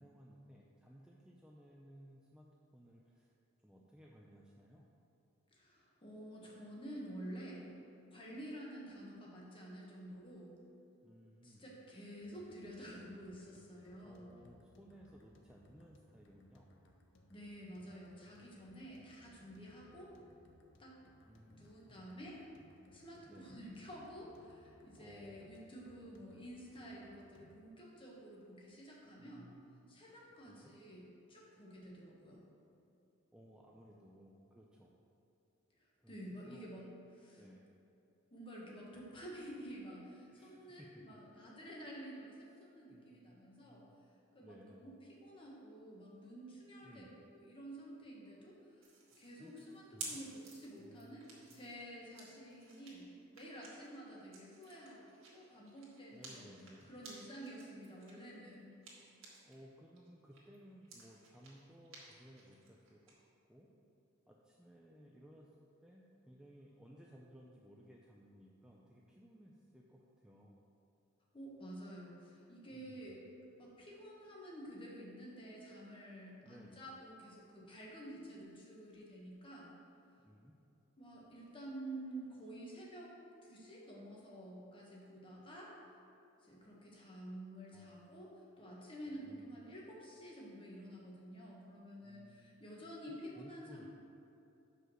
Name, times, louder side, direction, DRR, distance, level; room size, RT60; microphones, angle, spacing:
voice 1, 0.0-2.5 2.7-3.3 3.6-4.9 11.0-11.7 14.0-16.7 21.3-22.1 23.2-23.6 25.0-25.5 29.2-30.2 30.4-30.7 33.3-34.9 36.0-36.2 36.4-36.8 37.3-37.7 40.3-41.0 42.9-43.9 44.4-44.8 46.8-47.2 49.4-49.6 49.9-50.2 50.8-51.6 56.1-56.9 59.5-63.2 63.5-63.7 64.3-65.5 65.8-70.6 72.7-73.2 76.4-76.9 80.2-80.6 87.7-87.9 89.0-89.6 92.0-92.7 93.1-93.9, equal, 5° right, -3 dB, 0.4 m, -59 dB
voice 2, 5.5-7.7 8.1-10.5 11.4-14.3 17.3-20.1 20.8-20.9 21.6-22.4 22.9-29.5 29.9-32.4 35.8-37.4 38.3-43.8 44.3-48.9 49.2-51.2 51.5-56.5 56.8-58.7 71.3-73.2 73.6-79.7 81.0-83.2 83.4-85.7 86.4-93.9, right 1 dB, 25° left, -4 dB, 1.4 m, -50 dB
sound 1, 12.2-27.6, left 1 dB, 60° left, 0.7 m, -66 dB
sound 2, 48.8-59.6 60.0-63.1, right 4 dB, 70° right, 1.8 m, -54 dB
5.9 x 5.4 x 6.3 m, 2.8 s
head